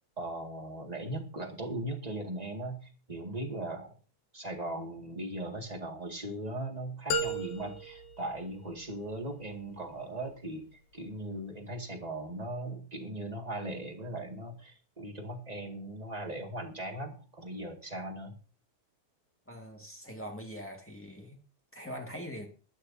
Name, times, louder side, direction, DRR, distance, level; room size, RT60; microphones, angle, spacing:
voice 1, 0.2-4.0 4.3-18.4, right 1 dB, 20° right, 1.0 m, -39 dB
sound 1, 7.1-9.2, equal, 90° left, 3.3 m, -35 dB
voice 2, 19.5-21.4 21.7-22.5, equal, 15° left, 0.5 m, -42 dB
21.0 x 11.5 x 2.7 m
omnidirectional pair, 4.2 m